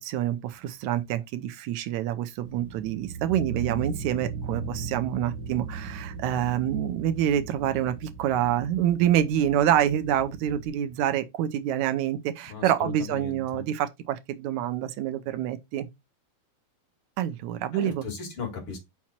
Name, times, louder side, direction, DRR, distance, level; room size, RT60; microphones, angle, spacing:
voice 1, 0.0-15.9 17.2-18.0, right 11 dB, 75° right, 1.9 m, -27 dB
sound 1, 2.4-10.7, right 5 dB, 45° right, 1.9 m, -37 dB
voice 2, 12.5-13.6 17.7-18.8, left 5 dB, 45° left, 2.7 m, -37 dB
5.9 x 4.4 x 4.3 m
omnidirectional pair, 3.8 m